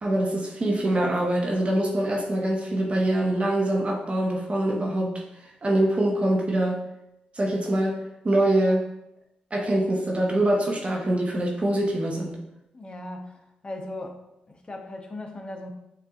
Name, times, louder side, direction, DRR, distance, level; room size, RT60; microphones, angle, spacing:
voice 1, 0.0-5.2 5.6-6.8 7.3-8.0 8.2-8.8 9.5-12.4, right 1 dB, 40° right, 0 dB, 1.0 m, -24 dB
voice 2, 12.7-14.2 14.5-15.7, left 1 dB, 30° left, 3 dB, 0.8 m, -38 dB
7.6 x 2.6 x 2.5 m, 0.86 s
supercardioid pair, 55°, 3 cm